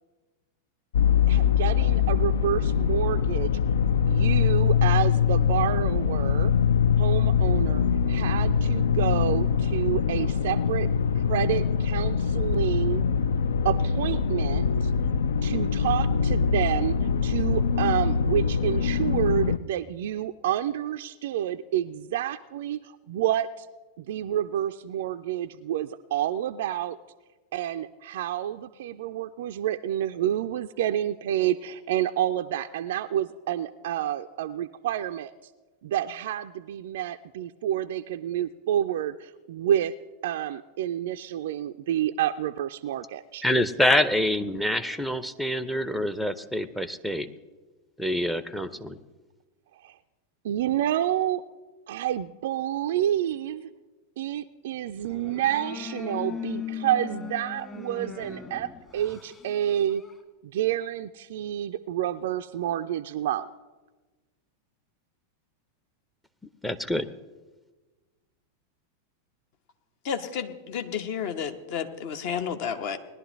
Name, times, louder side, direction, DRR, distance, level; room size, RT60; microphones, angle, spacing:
sound 1, 0.9-19.6, left 7 dB, 65° left, 0.4 m, -23 dB
voice 1, 1.3-3.6 4.0-6.5 7.0-10.9 11.1-13.0 13.6-14.9 15.4-17.0 17.2-23.7 24.0-27.0 27.5-35.3 35.8-39.9 40.2-43.4 49.8-50.0 50.4-51.4 51.9-53.7 54.2-60.0 60.4-63.5, right 11 dB, 55° right, 7 dB, 0.3 m, -29 dB
voice 2, 43.4-47.3 48.0-49.0 66.6-67.1, left 1 dB, 5° left, 13 dB, 0.6 m, -26 dB
sound 2, 55.0-60.2, left 6 dB, 20° left, 1.6 m, -38 dB
voice 3, 70.0-73.0, left 7 dB, 50° left, 8 dB, 1.0 m, -31 dB
20.0 x 11.0 x 3.2 m, 1.2 s
figure-of-eight pair, 90°, 0 cm